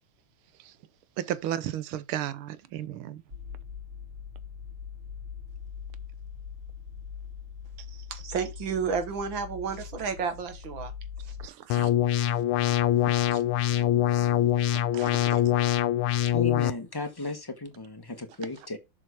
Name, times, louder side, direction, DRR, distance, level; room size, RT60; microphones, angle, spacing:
voice 1, 1.2-3.2 11.4-11.9 13.3-13.4 14.9-15.4, right 11 dB, 85° right, 1.6 m, -34 dB
sound 1, 3.3-11.5, left 7 dB, 25° right, 3.1 m, -42 dB
voice 2, 8.1-10.9 11.2-11.4, right 6 dB, 70° right, 2.2 m, -31 dB
sound 2, 11.7-16.7, left 11 dB, 90° left, 1.5 m, -24 dB
voice 3, 16.3-18.8, left 2 dB, 15° left, 1.0 m, -35 dB
7.3 x 5.2 x 4.8 m
omnidirectional pair, 2.3 m